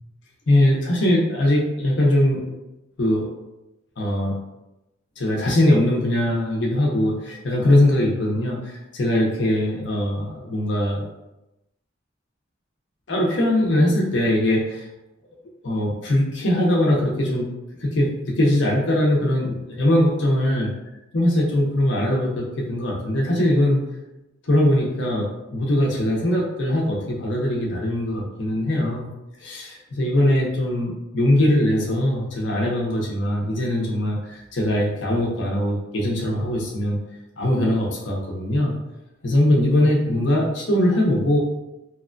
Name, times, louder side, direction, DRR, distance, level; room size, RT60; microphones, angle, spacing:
voice 1, 0.5-2.5 3.0-3.3 4.0-4.4 5.2-11.0 13.1-14.9 15.6-17.5 17.8-20.7 21.1-23.8 24.4-29.1 29.4-37.0 37.4-38.7 39.2-41.4, left 1 dB, 65° left, -2 dB, 0.6 m, -21 dB
2.9 x 2.2 x 2.4 m, 0.93 s
head